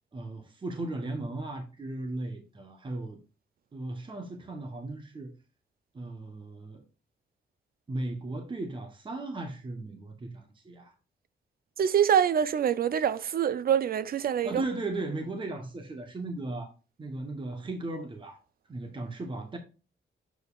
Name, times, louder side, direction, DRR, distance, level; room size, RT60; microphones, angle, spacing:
voice 1, 0.1-3.2 3.7-5.3 5.9-6.8 7.9-10.9 14.4-16.7 17.0-18.4 18.7-19.6, right 2 dB, 25° right, 1.0 m, -36 dB
voice 2, 11.8-14.6, right 8 dB, 50° right, 0.5 m, -25 dB
7.0 x 6.5 x 2.4 m
wide cardioid pair, 130°, 20 cm